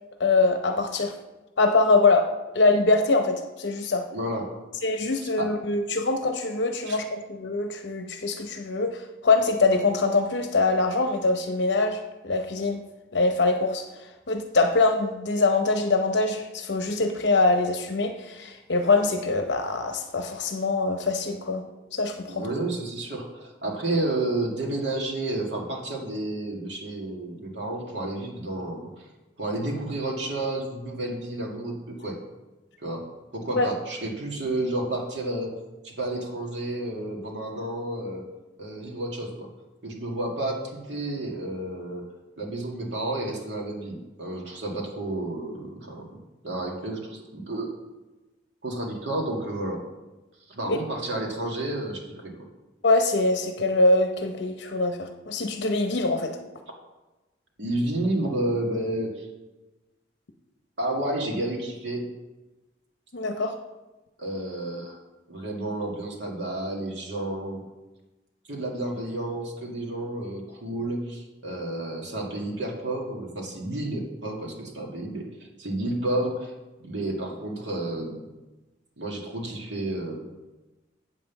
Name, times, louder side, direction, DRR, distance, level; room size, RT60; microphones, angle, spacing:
voice 1, 0.2-1.1 1.6-4.1 4.8-12.8 13.1-21.6 21.9-22.4 33.6-33.7 50.7-50.8 52.8-56.4 63.1-63.5, left 3 dB, 70° left, 5 dB, 0.7 m, -23 dB
voice 2, 4.1-4.5 5.2-5.5 6.9-7.0 22.3-28.9 29.4-32.2 32.8-33.0 33.3-35.6 35.8-38.2 38.6-39.5 39.8-42.0 42.4-46.2 46.4-47.7 48.6-49.8 50.5-52.5 57.6-59.3 60.8-62.1 64.2-65.0 65.3-67.6 68.5-75.3 75.6-76.5 76.8-78.2 79.0-80.2, right 1 dB, 70° right, -1 dB, 2.0 m, -31 dB
8.2 x 5.5 x 7.1 m, 1.1 s
head